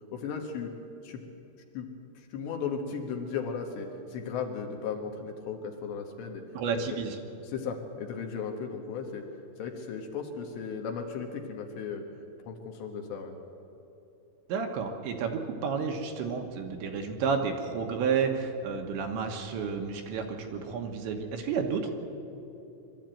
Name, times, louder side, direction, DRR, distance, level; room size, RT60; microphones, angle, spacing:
voice 1, 0.1-0.7 1.0-1.2 1.7-1.9 2.2-6.4 6.7-7.0 7.4-9.3 9.6-12.0 12.4-13.3, left 6 dB, 70° left, 3 dB, 3.4 m, -36 dB
voice 2, 6.5-7.2 14.5-21.9, right 5 dB, 75° right, 3 dB, 3.3 m, -31 dB
23.0 x 13.0 x 9.1 m, 2.9 s
omnidirectional pair, 5.7 m